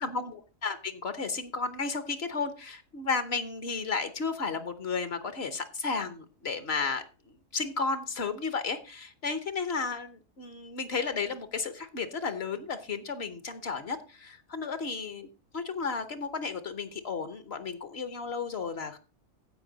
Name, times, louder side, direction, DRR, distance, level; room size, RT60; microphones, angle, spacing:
voice 1, 0.0-15.3 15.5-19.0, left 4 dB, 55° left, 10 dB, 1.2 m, -33 dB
15.5 x 5.3 x 4.0 m, 0.33 s
omnidirectional pair, 1.4 m